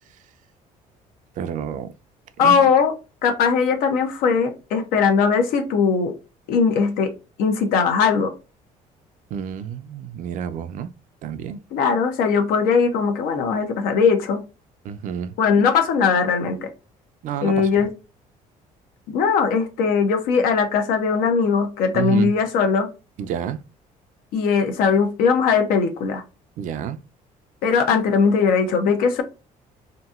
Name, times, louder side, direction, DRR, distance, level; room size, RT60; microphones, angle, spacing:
voice 1, 1.4-1.9 2.4-2.7 9.3-10.9 11.2-11.6 14.8-15.3 17.2-17.9 21.9-22.3 23.2-23.6 26.6-27.0, right 9 dB, 60° right, 0.4 m, -29 dB
voice 2, 2.4-2.9 3.2-6.1 6.5-7.1 7.4-8.3 11.7-14.4 15.4-16.7 17.4-17.9 19.1-22.9 24.3-26.2 27.6-29.2, left 5 dB, 85° left, 0.8 m, -19 dB
2.9 x 2.7 x 2.3 m
cardioid pair, 115°, 15 cm